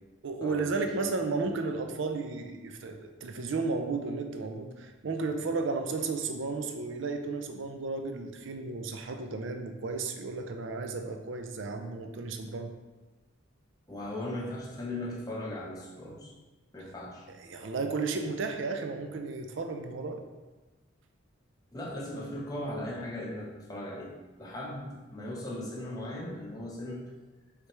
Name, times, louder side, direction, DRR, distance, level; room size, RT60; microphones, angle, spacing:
voice 1, 0.2-12.7 17.3-20.2, right 3 dB, 60° right, 5 dB, 0.4 m, -33 dB
voice 2, 13.9-16.3 16.7-17.3 21.7-24.1 24.4-27.0, left 1 dB, 20° left, -4 dB, 0.7 m, -38 dB
4.8 x 3.3 x 3.1 m, 1.2 s
head